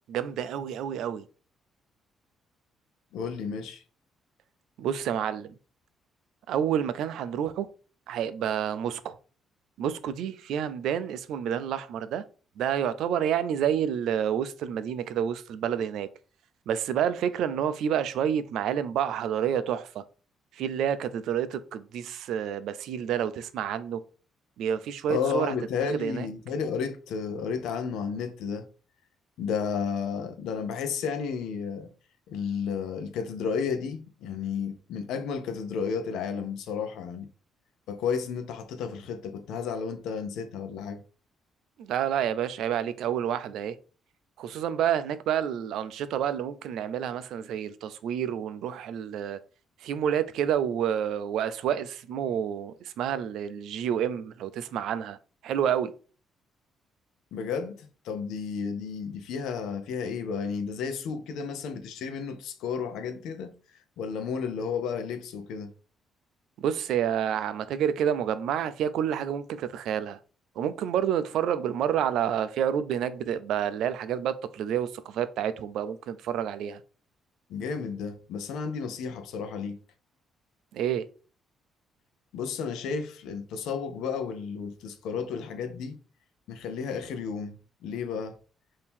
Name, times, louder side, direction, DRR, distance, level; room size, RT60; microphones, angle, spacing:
voice 1, 0.1-1.2 4.8-5.5 6.5-7.7 8.1-9.2 9.8-12.2 12.6-16.1 16.7-20.0 20.5-24.0 24.6-25.5 26.0-26.3 41.8-43.8 44.4-49.4 49.8-55.2 55.4-55.9 66.6-70.2 70.6-76.8 80.7-81.0, right 9 dB, 80° right, 0.4 m, -29 dB
voice 2, 3.1-3.8 25.1-28.7 29.4-31.9 32.3-37.3 37.9-41.0 57.3-63.5 64.0-65.7 77.5-79.8 82.3-86.0 86.5-88.4, left 6 dB, 85° left, 0.6 m, -32 dB
3.5 x 2.8 x 4.3 m
cardioid pair, 90°, 0 cm